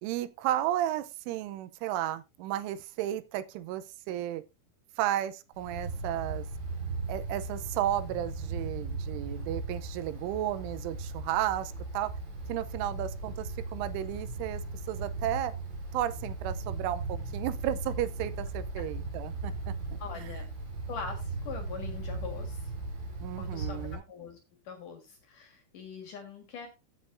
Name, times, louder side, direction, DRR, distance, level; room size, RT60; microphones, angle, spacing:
voice 1, 0.0-4.4 5.0-6.5 7.1-12.1 12.5-14.6 14.9-15.5 15.9-19.7 23.2-24.0, right 12 dB, 85° right, 3.2 m, -33 dB
Wind, 5.5-23.9, right 2 dB, 65° right, 7.9 m, -37 dB
voice 2, 20.0-20.5 20.9-22.7 23.4-24.4 24.6-26.7, left 5 dB, 55° left, 2.5 m, -42 dB
15.5 x 7.7 x 2.6 m
omnidirectional pair, 5.6 m